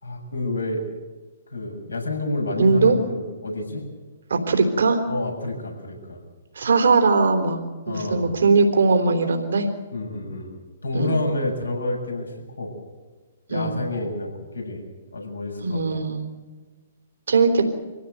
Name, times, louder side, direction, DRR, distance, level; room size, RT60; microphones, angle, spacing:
voice 1, 0.0-0.8 1.5-3.8 5.1-6.2 7.9-8.3 9.9-10.5 10.8-12.7 13.5-14.8 15.1-16.0, left 2 dB, 90° left, 1 dB, 7.4 m, -29 dB
voice 2, 2.6-3.0 4.3-5.0 6.6-9.7 10.9-11.2 13.5-13.8 15.6-16.3 17.3-17.6, right 4 dB, 70° right, 5 dB, 3.7 m, -20 dB
25.0 x 16.0 x 8.1 m, 1.3 s
figure-of-eight pair, 125°, 0 cm